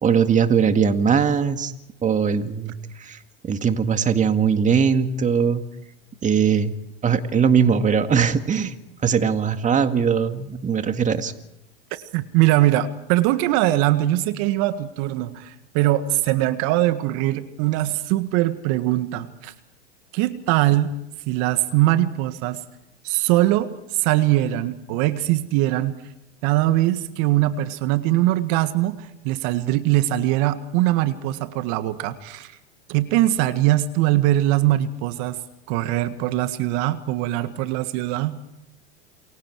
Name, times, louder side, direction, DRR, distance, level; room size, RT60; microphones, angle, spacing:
voice 1, 0.0-1.7 2.0-3.2 3.4-5.6 6.2-6.7 7.0-8.8 9.0-11.3, right 7 dB, 25° right, 8 dB, 2.0 m, -20 dB
voice 2, 11.9-19.5 20.1-20.9 21.3-22.6 23.0-26.0 26.4-32.5 32.9-35.4 35.7-38.4, right 15 dB, 55° right, 11 dB, 1.8 m, -21 dB
29.0 x 23.0 x 4.7 m, 0.85 s
hypercardioid pair, 100°, 33 cm